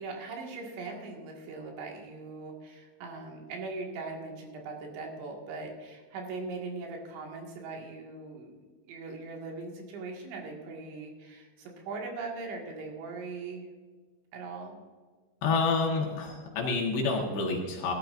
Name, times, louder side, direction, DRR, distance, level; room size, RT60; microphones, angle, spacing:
voice 1, 0.0-8.5 8.9-13.7 14.3-14.8, right 3 dB, 80° right, 0 dB, 4.2 m, -40 dB
voice 2, 15.4-17.9, left 4 dB, 75° left, -1 dB, 3.5 m, -28 dB
17.5 x 12.0 x 2.6 m, 1.5 s
omnidirectional pair, 5.1 m